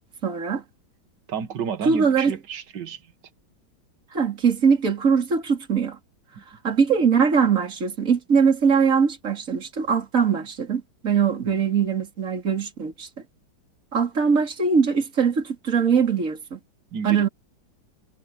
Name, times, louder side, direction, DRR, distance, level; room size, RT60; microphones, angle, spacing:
voice 1, 0.2-0.6 1.8-2.3 4.1-6.0 6.6-13.1 13.9-16.6 17.0-17.3, right 6 dB, 40° right, 3.8 m, -21 dB
voice 2, 1.3-3.0 11.4-11.6 16.9-17.3, right 7 dB, 65° right, 1.9 m, -31 dB
omnidirectional pair, 2.1 m